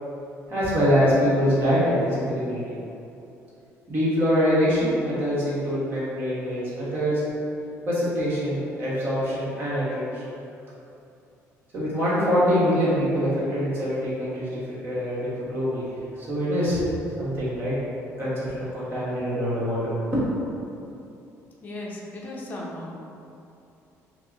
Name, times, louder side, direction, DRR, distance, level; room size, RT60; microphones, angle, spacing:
voice 1, 0.5-2.6 3.9-7.2 7.9-10.2 11.7-15.9 16.2-17.7 18.2-20.2, equal, 40° right, -9 dB, 1.3 m, -24 dB
voice 2, 21.6-23.0, left 1 dB, 30° left, -4 dB, 0.6 m, -36 dB
5.4 x 2.1 x 2.7 m, 2.7 s
cardioid pair, 155°, 6 cm